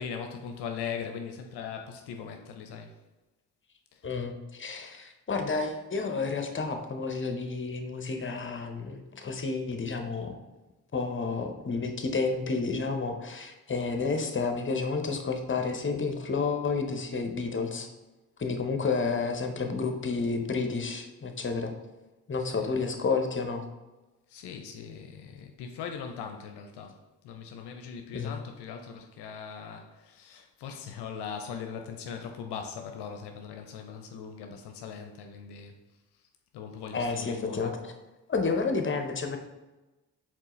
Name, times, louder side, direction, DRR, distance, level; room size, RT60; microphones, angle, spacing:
voice 1, 0.0-3.0 3.9-4.0 19.5-19.9 22.6-22.7 24.3-35.8 36.5-37.7, left 6 dB, 65° left, 0.6 m, -40 dB
voice 2, 4.0-10.3 10.9-17.9 18.4-21.7 22.3-23.6 28.1-28.3 36.9-37.9 38.3-39.4, left 4 dB, 25° left, 0.7 m, -30 dB
4.4 x 3.7 x 3.0 m
hypercardioid pair, 40°, 44 cm